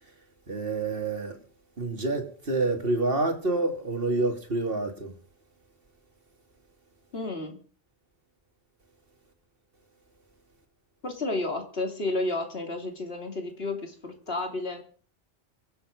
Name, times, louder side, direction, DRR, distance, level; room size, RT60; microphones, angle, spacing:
voice 1, 0.5-1.4 1.8-5.2, right 2 dB, 60° right, 2.9 m, -28 dB
voice 2, 7.1-7.6 11.0-14.8, left 2 dB, 65° left, 3.2 m, -31 dB
24.0 x 8.1 x 5.2 m
omnidirectional pair, 1.1 m